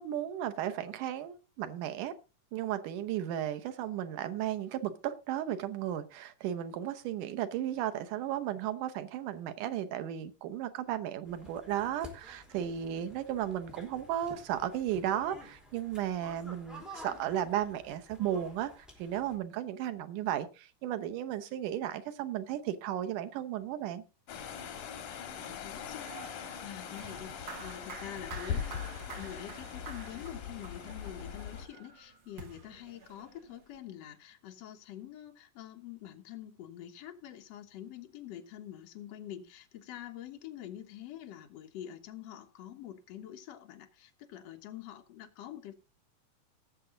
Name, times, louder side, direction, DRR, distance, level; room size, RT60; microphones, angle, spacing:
voice 1, 0.0-2.1 2.5-24.0, right 11 dB, 80° right, 2.5 m, -35 dB
sound 1, 11.2-19.4, equal, ahead, 4.0 m, -51 dB
sound 2, 24.3-31.7, left 8 dB, 85° left, 3.2 m, -41 dB
voice 2, 25.4-45.7, left 11 dB, 60° left, 2.3 m, -46 dB
sound 3, 26.0-33.8, right 4 dB, 50° right, 2.3 m, -49 dB
18.0 x 6.9 x 3.8 m
omnidirectional pair, 3.6 m